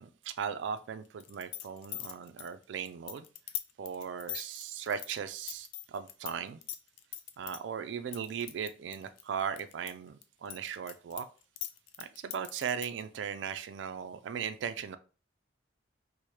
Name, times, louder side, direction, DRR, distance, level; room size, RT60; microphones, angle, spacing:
voice 1, 0.0-3.3 3.8-6.6 7.4-11.3 12.0-15.0, right 7 dB, 85° right, 11 dB, 0.3 m, -38 dB
sound 1, 1.2-6.3 6.6-7.6 8.1-9.9 10.2-13.0, left 13 dB, 85° left, 0.3 m, -41 dB
4.7 x 2.1 x 2.8 m, 0.36 s
head